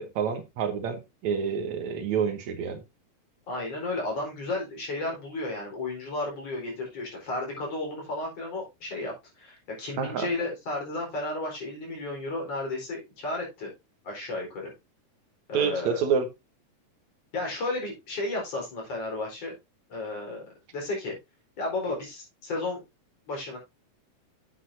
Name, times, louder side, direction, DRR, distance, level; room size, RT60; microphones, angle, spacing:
voice 1, 0.0-2.8 10.0-10.3 15.5-16.3, right 6 dB, 70° right, 2.4 m, -28 dB
voice 2, 3.5-13.7 14.0-14.7 15.5-16.0 17.3-19.5 19.9-21.2 21.6-22.8 23.3-23.6, left 2 dB, 50° left, 5.6 m, -33 dB
9.8 x 8.2 x 2.8 m
omnidirectional pair, 3.6 m